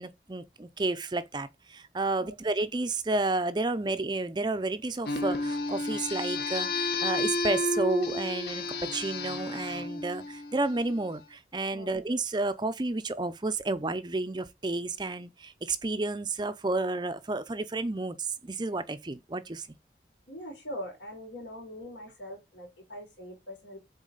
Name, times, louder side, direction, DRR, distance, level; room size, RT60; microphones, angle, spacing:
voice 1, 0.0-19.7, right 2 dB, 25° right, 0.5 m, -31 dB
sound 1, 5.1-11.1, left 2 dB, 55° left, 1.0 m, -32 dB
voice 2, 20.3-23.8, equal, 80° left, 3.8 m, -42 dB
7.4 x 4.0 x 3.9 m
head